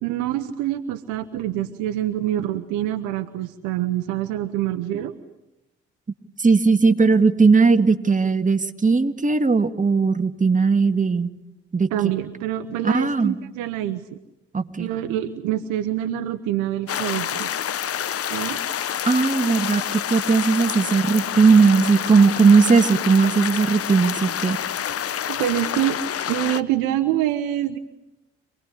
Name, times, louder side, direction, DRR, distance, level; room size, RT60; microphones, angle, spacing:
voice 1, 0.0-5.2 11.9-14.0 14.8-17.5 18.3-18.6 25.3-26.0 26.3-27.8, right 12 dB, 75° right, 8 dB, 1.1 m, -26 dB
voice 2, 6.4-11.3 11.7-11.9 12.8-13.4 14.5-14.9 19.0-24.6, right 4 dB, 25° right, 8 dB, 1.9 m, -18 dB
sound 1, 16.9-26.6, left 9 dB, 50° left, 1.0 m, -28 dB
27.0 x 19.5 x 9.9 m, 0.95 s
hypercardioid pair, 50°, 30 cm